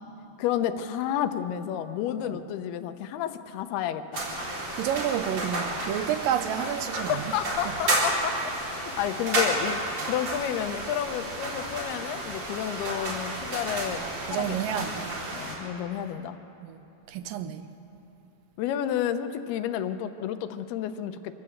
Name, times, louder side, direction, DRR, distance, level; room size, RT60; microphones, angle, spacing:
voice 1, 0.4-4.2 6.6-6.7 7.1-8.6 9.0-9.8 10.1-14.0 14.3-14.9 15.3-16.4 18.6-21.3, left 10 dB, 80° left, 10 dB, 2.8 m, -31 dB
sound 1, 4.1-15.6, right 1 dB, 40° right, 5.2 m, -31 dB
voice 2, 4.7-7.2 7.7-7.8 13.9-15.3 16.6-16.8 17.1-17.7, right 10 dB, 75° right, 10 dB, 2.2 m, -30 dB
25.0 x 17.5 x 7.9 m, 2.9 s
omnidirectional pair, 4.5 m